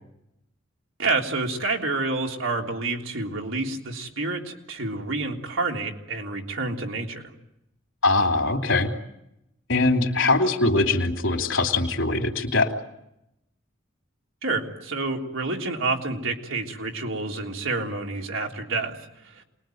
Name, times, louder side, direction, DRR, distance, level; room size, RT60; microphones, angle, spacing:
voice 1, 1.0-7.3 14.4-19.4, right 3 dB, 85° right, 1 dB, 3.6 m, -28 dB
voice 2, 8.0-8.9 9.7-12.7, left 2 dB, 80° left, 4 dB, 3.1 m, -22 dB
28.0 x 21.5 x 9.3 m, 0.85 s
head